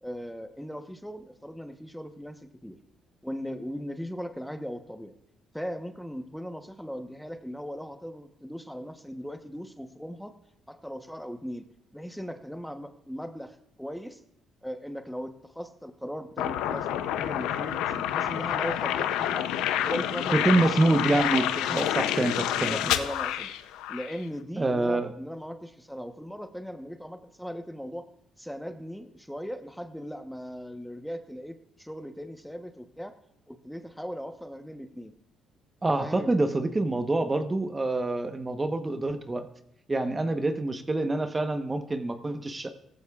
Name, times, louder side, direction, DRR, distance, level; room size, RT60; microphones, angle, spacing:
voice 1, 0.0-2.8 3.2-5.1 5.5-10.3 10.7-11.7 11.9-14.2 14.6-19.5 19.8-20.7 21.6-21.8 22.7-23.5 23.9-28.0 28.4-33.2 33.5-35.1 36.0-36.3 36.9-37.0, equal, ahead, 7 dB, 1.0 m, -38 dB
sound 1, 16.4-24.2, left 11 dB, 90° left, 0.6 m, -28 dB
voice 2, 20.3-22.8 24.6-25.1 35.8-39.5 39.9-42.7, right 2 dB, 25° right, 8 dB, 1.0 m, -26 dB
17.0 x 14.5 x 2.4 m, 0.76 s
supercardioid pair, 70°, 0 cm